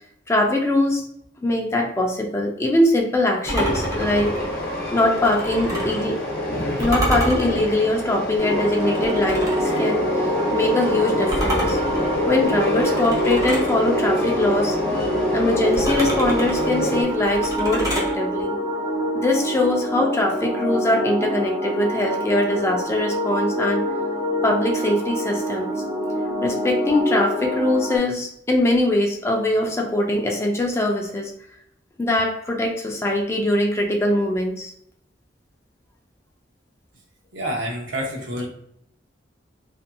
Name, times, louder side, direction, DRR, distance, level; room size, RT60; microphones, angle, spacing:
voice 1, 0.3-1.1 1.4-4.3 4.9-6.2 6.8-11.8 12.3-14.8 15.3-18.6 19.1-23.8 24.4-25.7 26.4-31.3 32.0-34.7, left 1 dB, 15° left, 1 dB, 0.4 m, -22 dB
Train, 3.5-17.0, left 1 dB, 55° left, 0.8 m, -27 dB
sound 1, 3.5-6.0 6.8-9.8 11.3-13.8 15.7-18.1, right 1 dB, 20° right, 0.7 m, -28 dB
sound 2, 8.4-28.0, equal, 50° right, 1.2 m, -26 dB
voice 2, 37.3-38.5, equal, 75° right, -1 dB, 0.8 m, -28 dB
2.6 x 2.5 x 2.2 m, 0.72 s
head